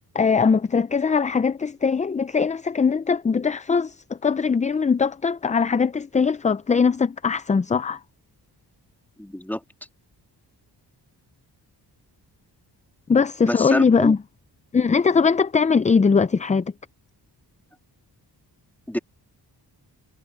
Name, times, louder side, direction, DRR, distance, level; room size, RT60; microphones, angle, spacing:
voice 1, 0.1-8.0 13.1-14.2 14.7-16.7, left 5 dB, 20° left, 0.3 m, -21 dB
voice 2, 9.2-9.6 13.4-14.1 18.9-19.0, left 1 dB, 5° left, 1.9 m, -26 dB
wide cardioid pair, 115°, 42 cm